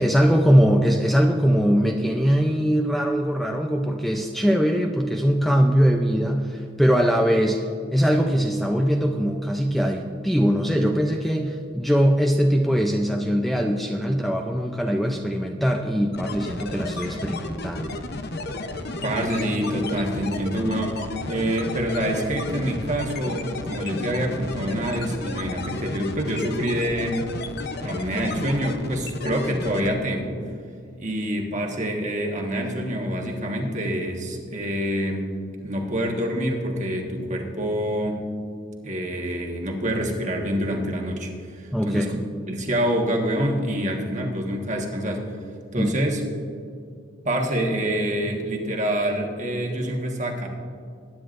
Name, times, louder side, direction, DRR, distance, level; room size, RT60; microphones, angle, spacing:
voice 1, 0.0-17.9 41.7-42.1 45.8-45.9, equal, ahead, 2 dB, 0.5 m, -21 dB
sound 1, 16.1-29.9, left 2 dB, 55° left, 0.8 m, -33 dB
voice 2, 19.0-27.3 27.8-30.4 31.0-35.3 35.6-38.2 38.8-42.2 42.5-45.2 45.7-46.2 47.2-50.5, equal, 40° right, 1 dB, 1.4 m, -26 dB
20.5 x 9.8 x 2.6 m, 2.4 s
head